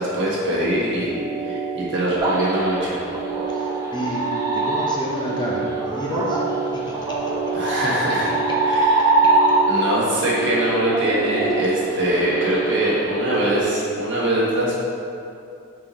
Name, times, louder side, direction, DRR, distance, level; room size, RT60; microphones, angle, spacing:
voice 1, 0.0-3.0 7.5-8.3 8.6-9.2 9.7-14.8, right 1 dB, 60° right, -6 dB, 1.4 m, -23 dB
sound 1, 0.8-13.6, right 6 dB, 45° right, 1.1 m, -29 dB
sound 2, 2.2-9.9 10.3-13.2, right 2 dB, 15° right, 0.8 m, -24 dB
voice 2, 3.5-4.3 4.5-6.4 6.7-7.2 11.5-11.6, equal, 20° left, -3 dB, 0.7 m, -29 dB
6.2 x 4.1 x 4.1 m, 2.6 s
head